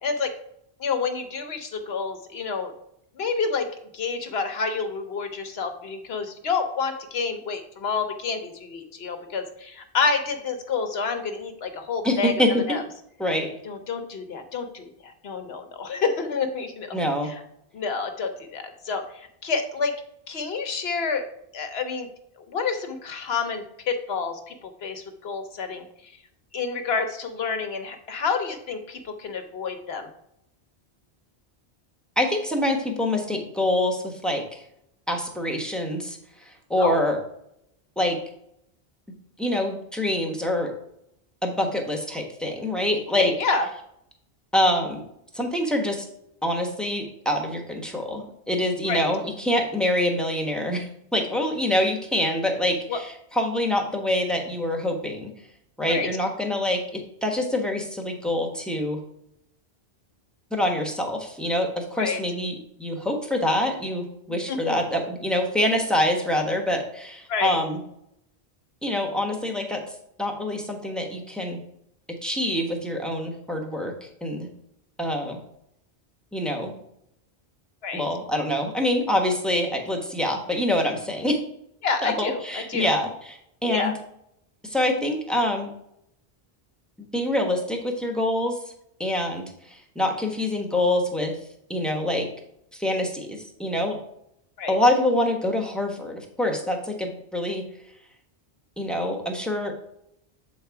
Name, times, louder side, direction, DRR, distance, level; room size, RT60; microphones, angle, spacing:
voice 1, 0.0-0.3 0.8-2.7 3.2-12.3 12.7-12.8 13.6-17.0 17.2-17.3 17.7-19.9 20.3-21.3 21.5-22.1 22.4-26.1 26.5-30.1 36.8-37.0 43.2-43.7 48.9-49.0 52.9-53.0 55.8-56.1 62.0-62.2 64.3-64.8 67.3-67.6 77.8-78.0 81.8-82.9 83.7-83.9 94.6-94.8, left 5 dB, 70° left, 7 dB, 1.1 m, -29 dB
voice 2, 12.0-12.8 13.2-13.5 16.9-17.3 32.2-34.6 35.1-36.2 36.4-37.2 38.0-38.2 39.4-40.7 41.4-43.3 44.5-45.0 45.3-46.0 46.4-55.3 55.8-59.0 60.5-67.8 68.8-69.8 70.2-71.6 72.2-73.9 74.2-74.5 75.0-75.4 76.3-76.7 77.9-81.4 82.0-83.9 84.6-85.7 87.1-88.6 89.0-91.3 91.7-92.3 92.7-94.0 94.7-97.6 98.8-99.7, left 1 dB, ahead, 1 dB, 1.0 m, -25 dB
7.8 x 4.0 x 4.7 m, 0.76 s
omnidirectional pair, 1.1 m